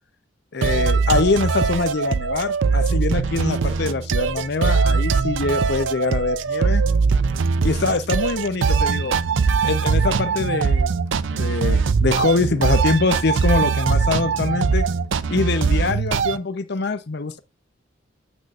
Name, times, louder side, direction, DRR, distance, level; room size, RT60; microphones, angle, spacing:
voice 1, 0.5-6.8 7.6-9.2 9.6-10.9 11.3-14.9 15.3-17.4, left 3 dB, 55° left, 0.7 m, -23 dB
sound 1, 0.6-16.4, right 5 dB, 75° right, 0.5 m, -21 dB
8.1 x 6.2 x 2.4 m
head